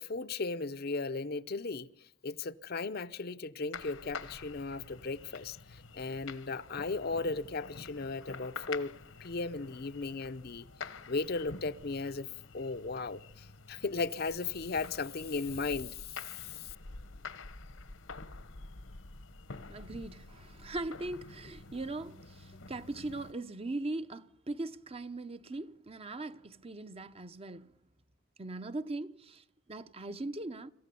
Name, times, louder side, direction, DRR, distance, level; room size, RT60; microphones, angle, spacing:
voice 1, 0.0-1.9 2.2-8.9 9.2-10.7 11.1-12.3 12.5-16.7, left 3 dB, 50° left, 0.7 m, -36 dB
sound 1, 3.7-23.3, left 4 dB, 75° left, 1.2 m, -48 dB
voice 2, 19.7-27.7 28.4-30.7, right 2 dB, 30° right, 0.7 m, -40 dB
26.5 x 14.5 x 6.8 m
head